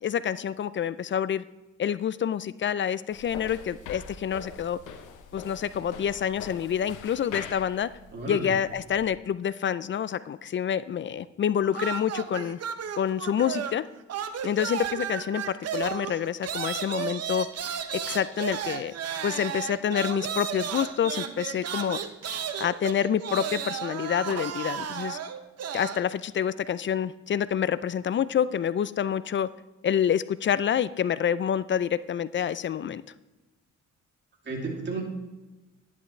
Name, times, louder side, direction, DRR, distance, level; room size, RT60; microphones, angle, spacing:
voice 1, 0.0-1.4 1.8-4.8 5.3-7.9 8.3-12.6 13.0-13.9 14.4-17.5 17.9-18.9 19.2-22.0 22.6-25.2 25.7-29.5 29.8-33.0, left 8 dB, 40° left, 16 dB, 0.4 m, -27 dB
sound 1, 3.1-9.1, left 6 dB, 85° left, 1.0 m, -43 dB
voice 2, 8.1-8.5 34.4-35.0, right 3 dB, 35° right, -1 dB, 2.8 m, -32 dB
sound 2, 11.7-13.8 14.1-26.1, right 8 dB, 55° right, 0.9 m, -34 dB
11.0 x 10.0 x 3.3 m, 1.1 s
cardioid pair, 90°, 30 cm